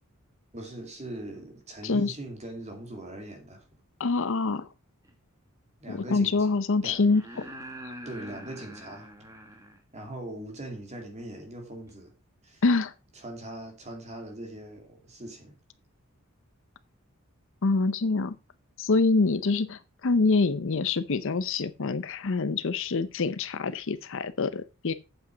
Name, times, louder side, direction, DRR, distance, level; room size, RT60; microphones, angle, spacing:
voice 1, 0.5-3.6 5.8-6.5 6.8-7.0 8.0-9.1 9.9-12.1 12.4-12.6 13.2-15.6, right 1 dB, 30° right, 2.5 m, -41 dB
voice 2, 1.8-2.1 4.0-4.7 5.9-7.4 7.8-7.9 12.6-12.9 17.6-18.4 18.8-24.9, left 3 dB, 65° left, 0.7 m, -25 dB
sound 1, 5.0-5.1 6.9-9.8 11.9-12.0, right 1 dB, 15° right, 1.8 m, -44 dB
8.3 x 7.8 x 5.0 m
head